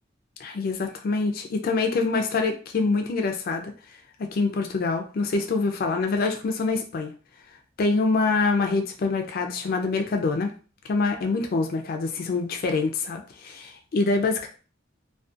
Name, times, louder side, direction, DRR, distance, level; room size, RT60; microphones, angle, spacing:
voice 1, 0.4-3.7 4.2-7.1 7.8-10.5 10.9-14.5, left 3 dB, 50° left, 4 dB, 0.4 m, -25 dB
2.4 x 2.2 x 2.5 m, 0.37 s
head